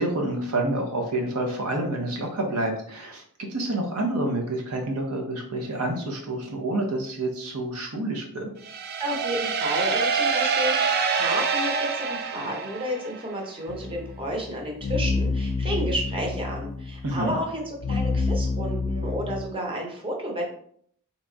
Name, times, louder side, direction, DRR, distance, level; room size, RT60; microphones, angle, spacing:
voice 1, 0.0-8.5 17.0-17.3, right 1 dB, 70° right, 1 dB, 0.8 m, -28 dB
sound 1, 8.6-13.4, right 5 dB, 45° right, 0.4 m, -26 dB
voice 2, 9.0-17.6 17.9-20.6, equal, 25° right, 0 dB, 0.9 m, -31 dB
sound 2, 13.7-19.4, left 3 dB, 70° left, 0.4 m, -28 dB
3.5 x 3.0 x 3.9 m, 0.62 s
head